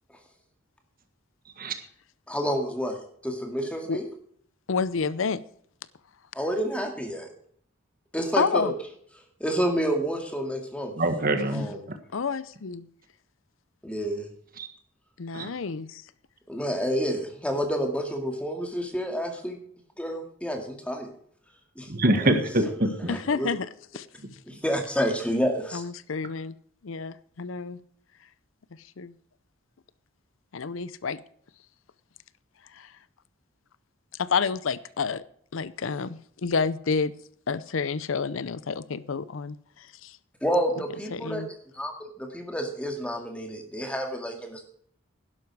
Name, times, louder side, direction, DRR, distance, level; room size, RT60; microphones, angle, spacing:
voice 1, 2.3-4.1 6.3-7.3 8.1-8.7 9.4-10.9 11.5-11.9 13.8-14.3 16.5-19.6 20.0-21.1 21.8-22.3 23.0-23.5 24.5-25.8 40.4-41.4 41.7-44.6, equal, 5° left, 3 dB, 2.1 m, -29 dB
voice 2, 4.7-5.4 8.4-8.7 12.1-12.9 15.2-16.0 23.1-23.7 23.9-24.1 25.7-26.5 26.8-27.8 29.0-29.1 30.5-31.2 32.7-32.9 34.2-35.2 35.5-37.1 37.5-40.2 41.1-41.5, left 5 dB, 75° left, 17 dB, 0.6 m, -29 dB
voice 3, 11.0-12.0 14.6-14.7 15.3-15.5 21.9-23.1, right 1 dB, 45° right, 7 dB, 1.6 m, -25 dB
12.0 x 11.0 x 4.7 m, 0.62 s
head